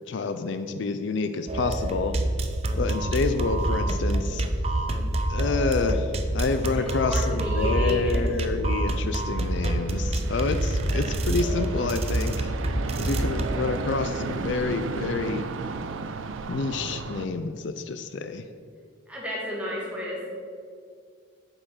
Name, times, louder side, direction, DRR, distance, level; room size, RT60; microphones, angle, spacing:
voice 1, 0.1-2.1 2.8-4.4 5.3-12.5 13.0-15.4 16.5-18.4, left 4 dB, 65° left, 9 dB, 0.4 m, -28 dB
sound 1, 1.5-13.6, right 1 dB, 30° right, 0.6 m, -27 dB
voice 2, 6.8-8.2 19.1-20.3, equal, 5° right, -5 dB, 2.0 m, -32 dB
sound 2, 9.1-17.3, right 4 dB, 85° right, 0.5 m, -34 dB
8.1 x 5.6 x 5.6 m, 2.1 s
head